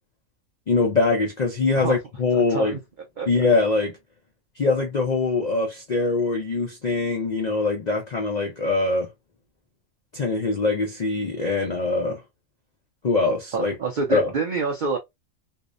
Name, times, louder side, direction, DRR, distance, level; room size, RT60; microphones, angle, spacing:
voice 1, 0.7-2.7 3.3-3.9 4.6-9.1 10.1-12.2 13.0-13.7 14.1-14.3, left 3 dB, 65° left, 0.4 m, -23 dB
voice 2, 2.3-2.8 3.2-3.3 13.5-15.0, right 4 dB, 85° right, 0.4 m, -27 dB
2.6 x 2.0 x 2.4 m
omnidirectional pair, 1.5 m